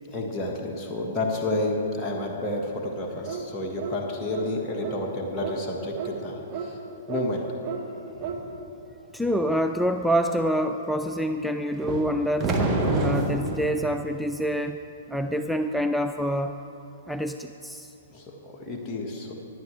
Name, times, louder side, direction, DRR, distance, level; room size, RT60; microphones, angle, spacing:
voice 1, 0.1-6.8 7.1-7.4 8.2-8.5 18.1-19.3, left 1 dB, 20° left, -2 dB, 1.5 m, -30 dB
sound 1, 3.3-3.5 3.8-4.0 4.3-4.5 4.8-5.0 5.4-5.6 6.0-6.1 6.5-6.7 7.1-7.2 7.6-7.8 8.2-8.4, right 7 dB, 40° right, 1.4 m, -33 dB
voice 2, 9.1-12.5 13.0-14.8 15.1-16.5 17.1-17.9, equal, ahead, 6 dB, 0.4 m, -26 dB
sound 2, 11.8-13.7, right 2 dB, 20° right, 1.5 m, -25 dB
17.0 x 11.0 x 3.3 m, 2.9 s
hypercardioid pair, 120°, 0 cm